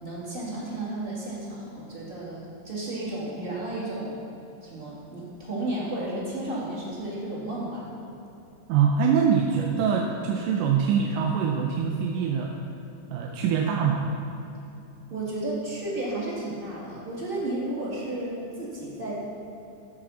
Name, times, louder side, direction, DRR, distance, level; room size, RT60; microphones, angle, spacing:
voice 1, 0.0-4.2 4.6-7.9 15.1-19.2, right 1 dB, 20° right, -6 dB, 1.6 m, -33 dB
voice 2, 8.7-12.6 13.1-14.1, right 6 dB, 90° right, 0 dB, 2.2 m, -24 dB
13.5 x 4.9 x 6.2 m, 2.9 s
omnidirectional pair, 3.7 m